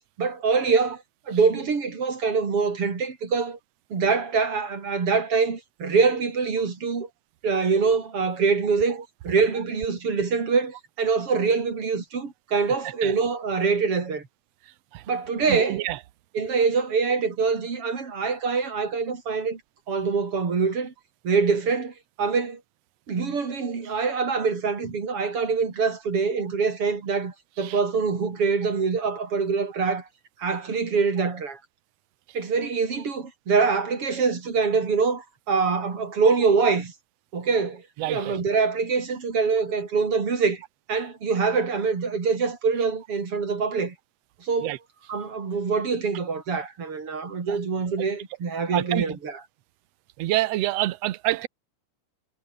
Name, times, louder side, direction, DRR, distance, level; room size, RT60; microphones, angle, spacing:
voice 1, 0.2-3.6 3.9-7.1 7.4-14.2 15.1-15.9 16.3-19.6 19.9-20.9 21.2-22.6 23.1-30.1 30.4-31.6 32.3-36.9 37.3-40.6 40.9-43.9 44.4-44.8 45.1-49.4, right 5 dB, 45° right, 4.1 m, -24 dB
voice 2, 15.5-16.0 27.6-27.8 38.0-38.4 44.6-44.8 48.7-49.0 50.2-51.5, right 16 dB, 65° right, 1.7 m, -26 dB
omnidirectional pair, 3.7 m